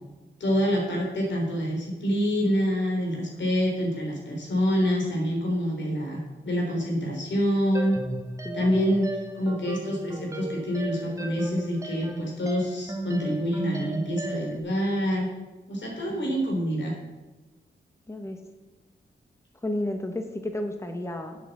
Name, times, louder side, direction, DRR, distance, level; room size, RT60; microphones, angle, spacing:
voice 1, 0.4-8.0 8.5-9.1 9.3-15.3 15.7-16.9, equal, 85° left, -1 dB, 3.5 m, -26 dB
sound 1, 7.7-14.6, right 1 dB, 15° right, 1.3 m, -36 dB
voice 2, 8.4-8.8 16.1-16.3 18.1-18.4 19.6-21.4, left 1 dB, 15° left, 5 dB, 1.1 m, -32 dB
8.1 x 7.6 x 7.2 m, 1.2 s
wide cardioid pair, 85°, 18 cm